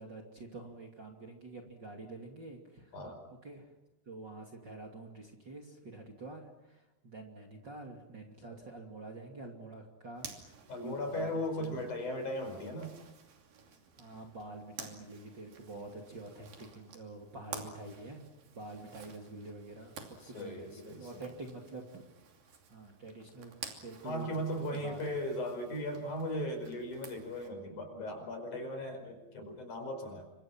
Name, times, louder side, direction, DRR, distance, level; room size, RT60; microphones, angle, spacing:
voice 1, 0.0-2.9 3.4-3.7 4.1-11.3 11.6-11.9 14.0-18.2 18.5-22.0 22.7-25.0, right 2 dB, 30° right, 1 dB, 3.0 m, -47 dB
Zipper (clothing), 10.2-27.5, right 6 dB, 70° right, 4.5 m, -52 dB
voice 2, 10.7-12.9 20.2-21.3 24.0-30.3, left 1 dB, 55° left, 5 dB, 6.5 m, -37 dB
29.5 x 26.0 x 6.0 m, 0.96 s
omnidirectional pair, 4.2 m